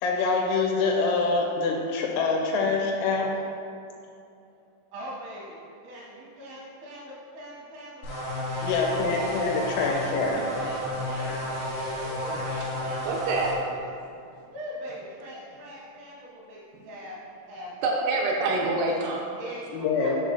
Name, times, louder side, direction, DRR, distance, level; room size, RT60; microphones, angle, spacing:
voice 1, 0.0-3.3 8.6-10.4 19.7-20.2, left 4 dB, 90° left, 0 dB, 3.4 m, -25 dB
voice 2, 4.9-5.6 5.8-8.1 8.5-9.0 10.5-11.7 11.9-13.4 14.5-17.2 17.5-18.0 19.4-20.2, equal, 60° right, -7 dB, 2.7 m, -41 dB
sound 1, 8.0-13.6, left 1 dB, 70° left, 2.3 m, -32 dB
voice 3, 13.1-13.6 16.7-16.8 17.8-19.2, right 2 dB, 85° right, -1 dB, 2.6 m, -26 dB
7.7 x 6.7 x 2.6 m, 2.5 s
omnidirectional pair, 6.0 m